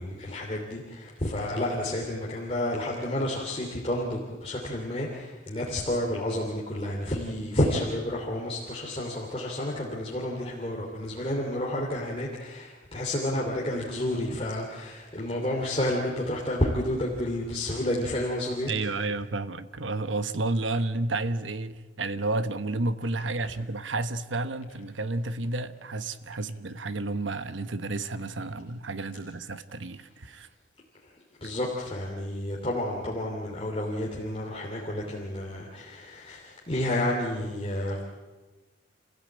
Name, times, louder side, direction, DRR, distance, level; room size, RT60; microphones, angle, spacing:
voice 1, 0.0-19.0 31.0-31.1 31.4-38.0, left 1 dB, 30° left, 2.9 m, -30 dB
voice 2, 18.7-30.5, right 2 dB, 90° right, 1.1 m, -31 dB
27.5 x 15.5 x 8.7 m
head